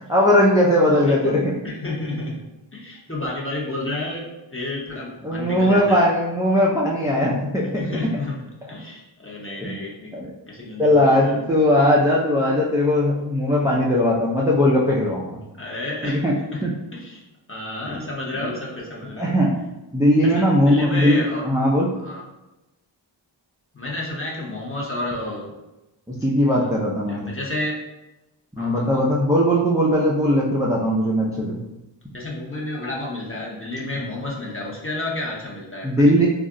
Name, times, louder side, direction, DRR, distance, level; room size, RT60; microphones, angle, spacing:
voice 1, 0.1-1.4 5.2-7.9 9.6-9.7 10.1-10.3 10.8-15.4 16.0-16.3 16.6-16.7 17.9-18.1 18.4-18.5 19.2-19.6 19.9-21.2 21.4-21.9 26.1-27.3 28.6-31.6 35.8-36.3, left 1 dB, 10° right, -5 dB, 0.4 m, -19 dB
voice 2, 1.1-1.4 1.6-2.4 2.7-6.1 7.8-8.3 8.7-10.1 10.5-11.5 15.5-16.2 16.5-16.6 16.9-17.2 17.5-19.4 20.2-21.4 21.9-22.2 23.7-25.5 26.5-26.7 27.1-27.8 28.6-29.1 32.1-36.1, left 2 dB, 25° left, -4 dB, 0.8 m, -30 dB
2.4 x 2.0 x 3.6 m, 0.98 s
wide cardioid pair, 40°, 47 cm